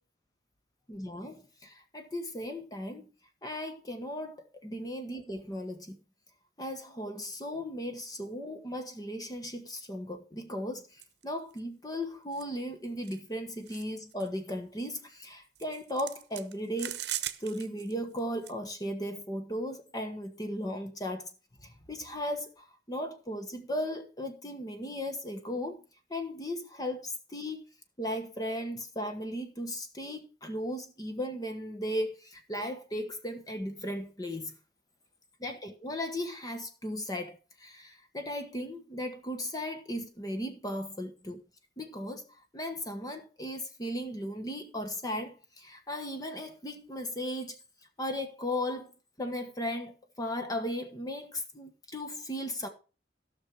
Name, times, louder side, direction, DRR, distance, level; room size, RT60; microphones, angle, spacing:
voice 1, 0.9-3.1 3.4-6.0 6.6-17.0 17.4-21.3 21.6-25.8 26.1-27.6 28.0-34.5 35.4-41.4 41.8-42.3 42.5-47.6 48.0-48.9 49.2-52.7, equal, 20° left, 1.2 m, -36 dB
sound 1, 11.0-11.2 11.6-11.7 12.3-12.4 13.0-13.2 13.7-13.8 14.1-14.3 15.6-17.9 18.2-18.5, right 12 dB, 70° right, 0.9 m, -39 dB
15.5 x 6.2 x 4.8 m
head